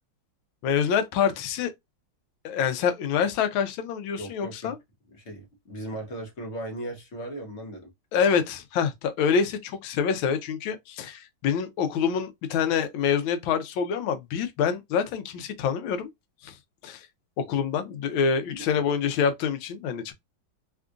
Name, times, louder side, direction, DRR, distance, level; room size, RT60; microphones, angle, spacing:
voice 1, 0.6-1.7 2.4-4.8 8.1-16.1 16.4-16.5 16.8-17.1 17.4-20.1, left 7 dB, 85° left, 1.4 m, -26 dB
voice 2, 4.2-4.7 5.1-7.9 18.8-18.9, right 1 dB, 55° left, 0.8 m, -37 dB
3.6 x 2.3 x 2.4 m
omnidirectional pair, 2.2 m